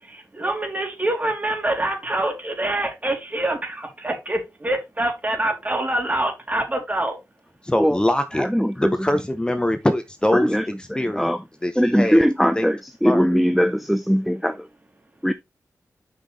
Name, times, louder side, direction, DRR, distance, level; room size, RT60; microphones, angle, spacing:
voice 1, 0.3-7.1, right 1 dB, 25° right, 3.5 m, -25 dB
voice 2, 7.6-8.5 8.8-11.3 11.6-12.3 12.6-12.7 13.0-13.3, left 1 dB, 15° left, 1.0 m, -23 dB
voice 3, 8.4-8.9 10.3-10.6 11.0-11.4 11.8-14.7 15.2-15.3, equal, ahead, 0.6 m, -20 dB
7.9 x 5.8 x 3.3 m
cardioid pair, 60°, 6 cm